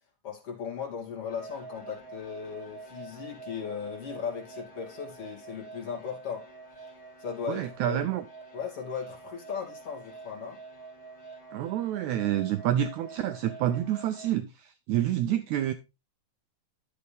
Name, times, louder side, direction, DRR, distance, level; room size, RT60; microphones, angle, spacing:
voice 1, 0.2-6.5 7.2-8.0 8.5-10.6, left 7 dB, 45° left, 3.4 m, -37 dB
sound 1, 1.3-14.3, right 4 dB, 20° left, 4.7 m, -47 dB
voice 2, 7.5-8.2 11.5-15.7, right 11 dB, 80° right, 1.7 m, -28 dB
11.5 x 6.9 x 3.4 m
omnidirectional pair, 3.9 m